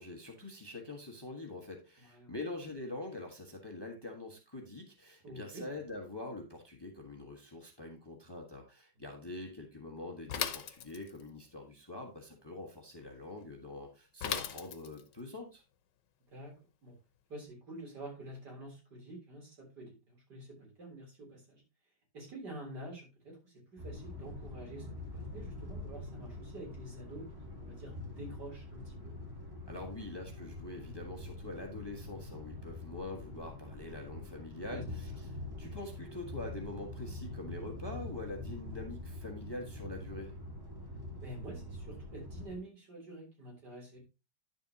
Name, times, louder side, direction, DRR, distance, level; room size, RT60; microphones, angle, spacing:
voice 1, 0.0-15.6 29.7-40.3, left 2 dB, 15° left, 2 dB, 1.4 m, -44 dB
voice 2, 2.0-2.3 5.2-5.6 16.3-16.5 16.8-16.9 17.3-21.6 22.1-29.1 34.6-34.8 41.2-44.0, right 1 dB, 70° right, -1 dB, 4.1 m, -48 dB
Bicycle / Mechanisms, 10.3-11.3 14.2-15.1, left 9 dB, 80° left, 1.4 m, -37 dB
sound 1, 23.8-42.6, left 2 dB, 15° right, 1.1 m, -45 dB
10.0 x 6.9 x 2.8 m, 0.27 s
omnidirectional pair, 1.9 m